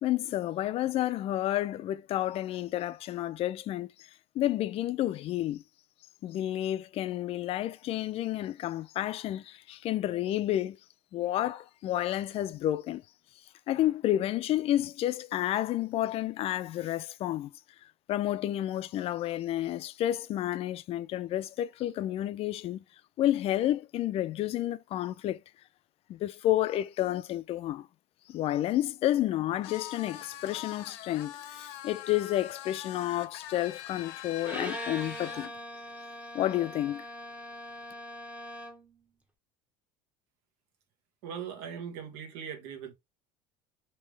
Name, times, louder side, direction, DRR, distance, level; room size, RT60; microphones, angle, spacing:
voice 1, 0.0-4.1 4.4-5.6 6.2-10.8 11.1-13.0 13.7-17.5 18.1-22.8 23.2-25.4 26.1-27.9 28.3-35.5 36.3-37.1, left 13 dB, 45° left, 0.4 m, -30 dB
sound 1, 29.6-35.5, left 12 dB, 80° left, 0.7 m, -43 dB
Bowed string instrument, 34.4-38.9, equal, 10° right, 0.8 m, -42 dB
voice 2, 41.2-42.9, right 8 dB, 80° right, 1.3 m, -40 dB
3.4 x 2.8 x 3.2 m
cardioid pair, 120°, 14 cm